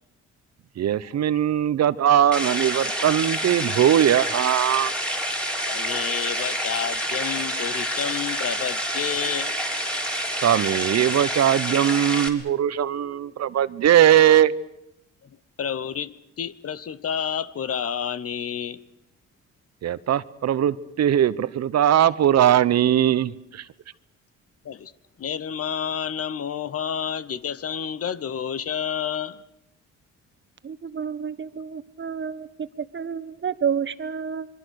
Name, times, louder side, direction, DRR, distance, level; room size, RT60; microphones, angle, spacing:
voice 1, 0.8-4.9 10.4-14.5 19.8-23.7, right 10 dB, 60° right, 0.9 m, -20 dB
sound 1, 2.3-12.3, equal, 5° left, 3.6 m, -28 dB
voice 2, 5.7-9.5 15.2-15.3 15.6-18.9 24.6-24.9 25.2-29.4, left 8 dB, 50° left, 1.0 m, -30 dB
voice 3, 30.6-32.5 32.8-34.5, right 7 dB, 40° right, 1.4 m, -29 dB
26.5 x 23.0 x 6.5 m
cardioid pair, 90°, 30 cm